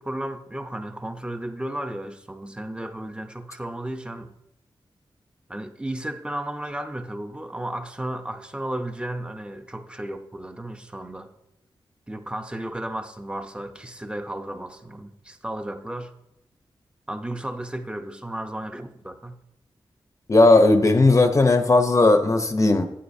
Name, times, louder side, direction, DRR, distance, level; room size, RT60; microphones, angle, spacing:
voice 1, 0.0-4.3 5.5-11.3 12.1-16.1 17.1-19.4, right 1 dB, 10° right, 0.7 m, -34 dB
voice 2, 20.3-22.9, left 2 dB, 35° left, 0.7 m, -16 dB
11.5 x 9.7 x 2.7 m
wide cardioid pair, 110°, 9 cm